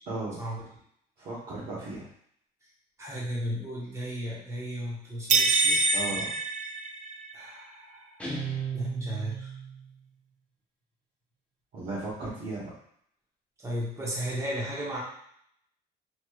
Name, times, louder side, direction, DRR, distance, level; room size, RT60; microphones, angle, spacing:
voice 1, 0.1-0.4 1.2-2.1 5.9-6.2 11.7-12.7, right 2 dB, 60° right, -10 dB, 1.1 m, -35 dB
voice 2, 3.0-6.0 7.3-8.2 8.7-9.5 13.6-15.0, equal, 15° right, -5 dB, 1.1 m, -34 dB
sound 1, 5.3-7.4, right 3 dB, 45° right, 0.4 m, -25 dB
Guitar, 8.2-9.9, right 6 dB, 5° left, 0.8 m, -35 dB
3.1 x 2.8 x 2.4 m, 0.68 s
cardioid pair, 110°, 17 cm